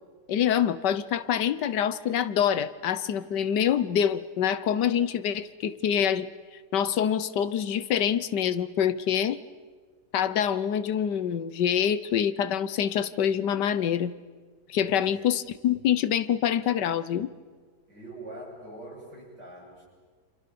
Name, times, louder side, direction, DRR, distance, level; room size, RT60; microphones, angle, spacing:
voice 1, 0.3-6.3 6.7-9.4 10.1-14.2 14.7-17.3, left 9 dB, 85° left, 15 dB, 1.6 m, -26 dB
voice 2, 14.7-15.1 17.9-19.9, right 1 dB, 80° right, -2 dB, 8.0 m, -43 dB
28.5 x 26.5 x 6.9 m, 1.5 s
omnidirectional pair, 1.8 m